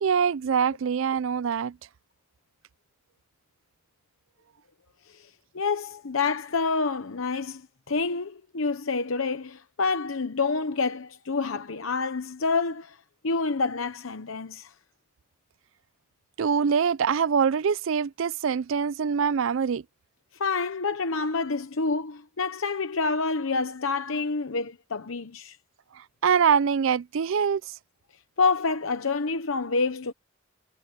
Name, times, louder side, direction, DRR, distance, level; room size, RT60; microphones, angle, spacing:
voice 1, 0.0-1.7 16.4-19.8 26.2-27.6, right 6 dB, 70° right, 0.4 m, -24 dB
voice 2, 5.5-13.0 13.2-14.7 20.4-25.6 28.4-30.1, left 4 dB, 75° left, 0.9 m, -28 dB
head